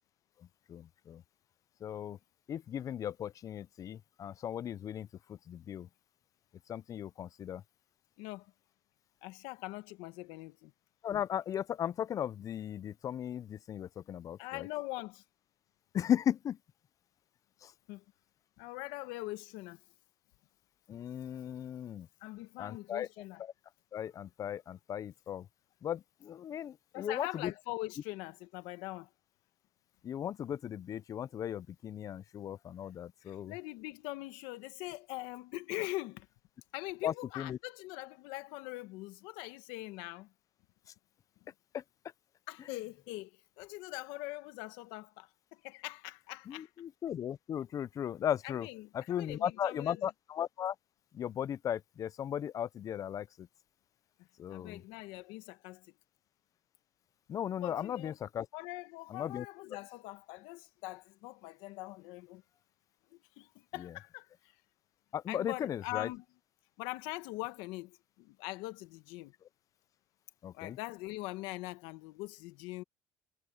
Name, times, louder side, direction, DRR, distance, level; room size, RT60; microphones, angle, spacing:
voice 1, 0.7-1.2 1.8-2.2 2.5-5.9 6.7-7.6 11.0-14.7 15.9-16.6 17.6-17.7 20.9-22.1 22.6-23.1 23.4-23.5 23.9-25.5 25.8-27.5 30.0-33.5 37.0-37.6 41.7-41.8 46.5-48.7 48.9-50.8 51.1-53.5 54.4-54.8 57.3-58.5 59.1-59.5 63.8-63.9 65.1-66.1 70.4-70.8, left 10 dB, 45° left, 0.7 m, -37 dB
voice 2, 9.2-10.7 14.4-15.2 17.9-18.0 18.6-19.8 22.2-23.4 26.9-29.1 33.3-36.3 36.7-40.3 42.5-43.3 43.6-46.7 48.4-50.0 54.5-55.9 57.6-58.1 58.5-62.4 63.1-64.3 65.3-66.2 66.8-69.3 70.5-72.8, left 20 dB, 80° left, 1.4 m, -42 dB
supercardioid pair, 95°, 8 cm